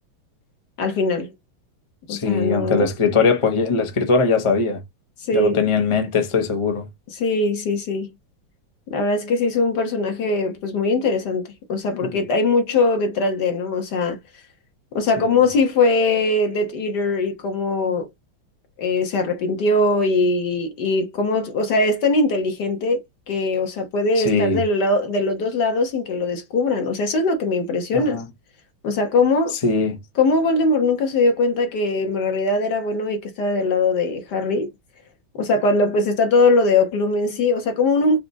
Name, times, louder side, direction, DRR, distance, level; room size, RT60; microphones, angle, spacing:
voice 1, 0.8-1.3 2.1-3.2 5.3-5.6 7.2-8.1 8.9-14.2 14.9-18.1 18.8-28.2 28.8-29.5 30.2-34.7 35.4-38.2, left 3 dB, 55° left, 1.7 m, -21 dB
voice 2, 2.1-4.8 5.3-6.9 12.0-12.2 15.2-15.4 24.2-24.6 27.9-28.3 29.6-30.0, left 4 dB, 40° left, 0.4 m, -21 dB
4.9 x 2.5 x 4.0 m
omnidirectional pair, 2.3 m